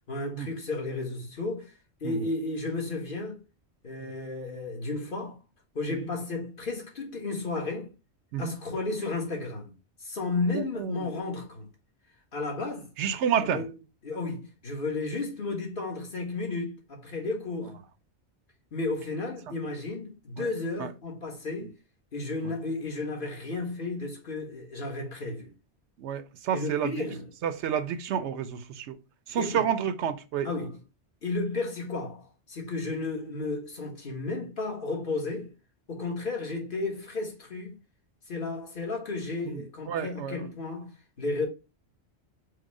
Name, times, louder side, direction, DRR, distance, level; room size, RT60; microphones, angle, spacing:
voice 1, 0.1-1.7 2.0-3.4 3.8-5.4 5.7-7.9 8.4-9.7 10.0-11.7 12.3-12.9 13.5-13.7 14.0-17.8 18.7-21.7 22.1-25.5 26.5-27.3 29.4-29.6 30.4-30.8 31.2-35.5 35.9-37.8 38.3-40.9 41.2-41.5, left 3 dB, 50° left, 1.4 m, -33 dB
voice 2, 10.5-11.1 13.0-13.6 20.4-20.5 20.8-20.9 26.0-27.0 27.4-29.0 29.3-30.5 39.4-40.5, right 8 dB, 85° right, 0.9 m, -30 dB
4.7 x 2.1 x 4.6 m
omnidirectional pair, 1.1 m